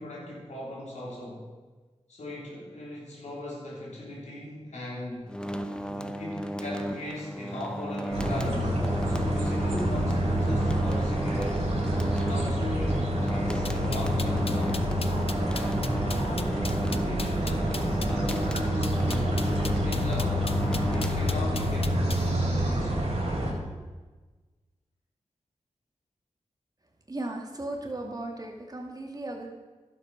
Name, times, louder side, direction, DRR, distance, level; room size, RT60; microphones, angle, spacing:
voice 1, 0.0-1.5 2.1-5.3 5.8-8.7 9.1-11.7 12.2-14.8 15.5-20.4 20.9-23.1, left 1 dB, 75° left, -4 dB, 3.4 m, -38 dB
sound 1, 5.3-21.8, equal, 5° left, 0.8 m, -35 dB
sound 2, 8.1-23.5, equal, 60° right, 3.4 m, -27 dB
sound 3, 13.7-22.3, left 4 dB, 55° left, 0.7 m, -38 dB
voice 2, 27.1-29.5, right 2 dB, 35° right, 1 dB, 2.3 m, -36 dB
11.0 x 7.5 x 5.6 m, 1.3 s
cardioid pair, 40°, 12 cm